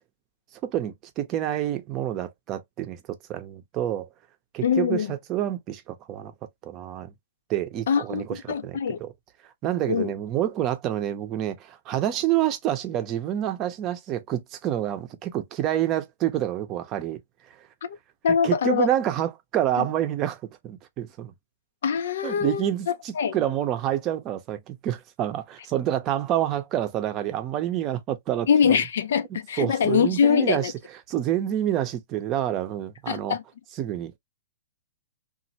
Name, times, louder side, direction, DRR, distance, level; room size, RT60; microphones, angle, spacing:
voice 1, 0.6-4.1 4.5-6.3 6.6-7.1 7.5-9.1 9.6-17.2 18.4-21.3 22.2-28.8 29.6-30.7 31.1-33.4 33.8-34.2, right 11 dB, 30° right, 0.6 m, -28 dB
voice 2, 4.6-5.1 7.9-9.0 9.9-10.1 17.8-18.0 18.2-18.9 19.8-19.9 21.8-23.4 28.5-30.7 33.1-33.4, left 7 dB, 70° left, 0.4 m, -23 dB
3.0 x 2.5 x 2.8 m
hypercardioid pair, 140°, 0 cm